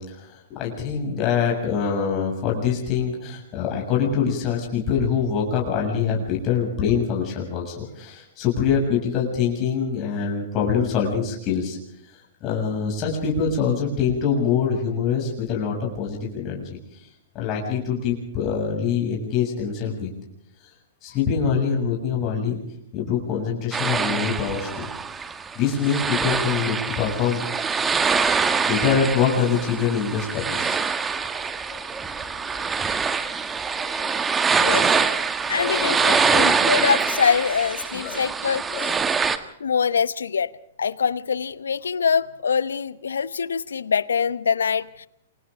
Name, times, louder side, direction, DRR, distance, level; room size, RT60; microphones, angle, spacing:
voice 1, 0.0-11.8 12.4-16.8 17.3-20.1 21.0-22.6 22.9-24.9 25.6-27.5 27.8-27.9 28.7-30.8 31.1-31.3 31.7-31.8 32.2-32.7 33.4-35.1 35.4-36.5 37.9-38.2 38.7-39.1, left 6 dB, 35° left, -1 dB, 7.2 m, -25 dB
sound 1, 23.7-39.4, right 5 dB, 15° right, 1.6 m, -24 dB
voice 2, 35.5-38.9 39.6-40.5 40.8-45.1, left 6 dB, 80° left, 17 dB, 0.9 m, -24 dB
29.0 x 24.5 x 3.8 m, 0.76 s
hypercardioid pair, 115°, 0 cm